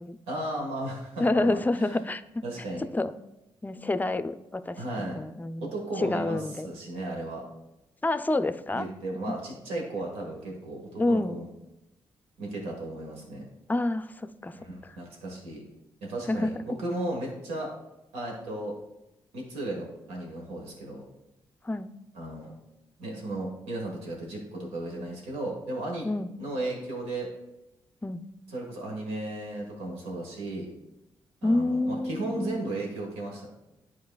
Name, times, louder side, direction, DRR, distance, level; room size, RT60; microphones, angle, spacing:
voice 1, 0.3-2.0 2.4-2.9 4.8-5.2 5.6-7.4 8.7-11.5 12.4-13.5 14.6-15.6 16.0-17.7 18.1-18.8 19.3-21.0 22.1-22.5 23.0-26.1 26.4-27.3 28.5-30.7 31.4-33.5, right 2 dB, 85° right, -1 dB, 1.5 m, -35 dB
voice 2, 1.2-2.4 2.8-3.1 3.6-4.8 5.1-5.7 6.0-6.7 8.0-8.8 9.1-9.3 11.0-11.4 13.7-14.6 14.8-14.9 16.3-16.5 21.6-21.9 26.0-26.3 28.0-28.2 31.4-32.6, left 2 dB, 15° left, 11 dB, 0.5 m, -28 dB
11.5 x 4.2 x 2.3 m, 0.92 s
supercardioid pair, 45°, 10 cm